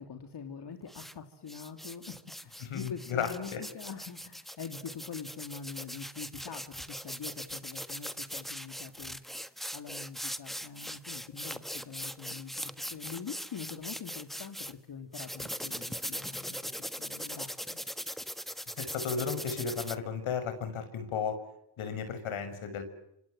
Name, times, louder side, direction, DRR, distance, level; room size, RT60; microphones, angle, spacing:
voice 1, 0.0-16.7 17.0-17.8, left 6 dB, 55° left, 5 dB, 3.4 m, -44 dB
sound 1, 0.9-1.1 1.5-14.7 15.1-20.0, equal, ahead, 1.6 m, -40 dB
voice 2, 2.6-3.6 18.8-21.4 21.8-22.8, left 6 dB, 75° left, 9 dB, 6.1 m, -34 dB
27.0 x 27.0 x 7.7 m, 0.78 s
supercardioid pair, 60°, 49 cm